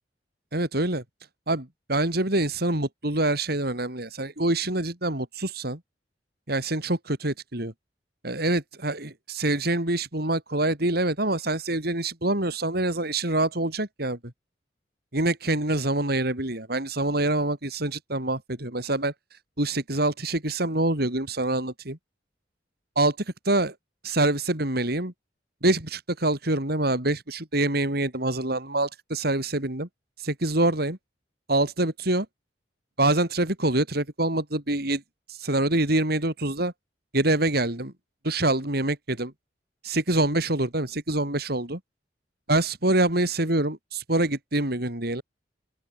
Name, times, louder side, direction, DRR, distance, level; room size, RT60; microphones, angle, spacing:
voice 1, 0.5-1.0 1.5-5.8 6.5-7.7 8.2-14.2 15.1-19.1 19.6-22.0 23.0-23.2 23.4-23.7 24.0-25.1 25.6-29.9 30.2-31.0 31.5-32.3 33.0-35.0 35.3-36.7 37.1-37.9 38.2-39.3 39.8-41.8 42.5-45.2, right 2 dB, 60° right, 4.2 m, -25 dB
open air
head